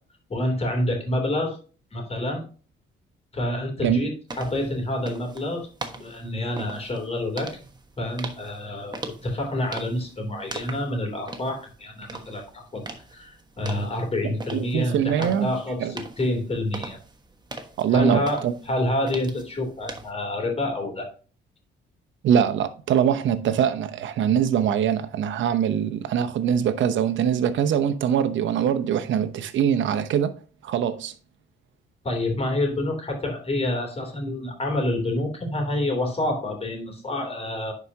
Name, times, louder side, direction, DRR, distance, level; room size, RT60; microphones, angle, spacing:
voice 1, 0.3-1.6 1.9-2.4 3.3-4.1 4.4-5.7 5.9-7.5 8.0-12.8 13.1-17.0 17.9-21.1 32.0-37.7, left 1 dB, 30° left, 3.2 m, -28 dB
sound 1, 4.3-20.1, right 2 dB, 20° right, 1.2 m, -41 dB
voice 2, 14.2-15.5 15.8-15.9 17.8-18.5 22.2-30.3 30.6-31.1, right 8 dB, 70° right, 0.9 m, -23 dB
10.5 x 4.8 x 2.8 m
cardioid pair, 90°, 20 cm